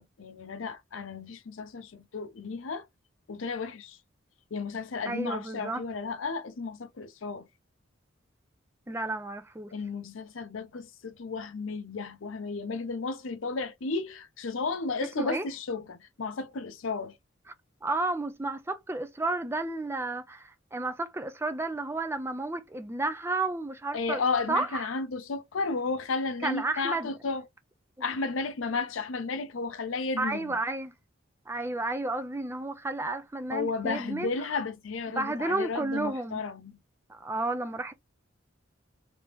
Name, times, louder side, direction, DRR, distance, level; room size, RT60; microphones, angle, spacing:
voice 1, 0.0-2.9 3.3-4.0 4.5-7.5 9.7-17.2 23.9-27.4 28.0-30.5 33.5-36.8, left 4 dB, 80° left, 0.6 m, -33 dB
voice 2, 5.0-5.8 8.9-9.7 15.2-15.5 17.8-24.2 24.5-24.9 26.4-27.1 30.2-30.9 31.5-34.3 35.1-36.4 37.1-37.9, right 2 dB, 10° right, 0.4 m, -32 dB
3.4 x 2.9 x 2.9 m
head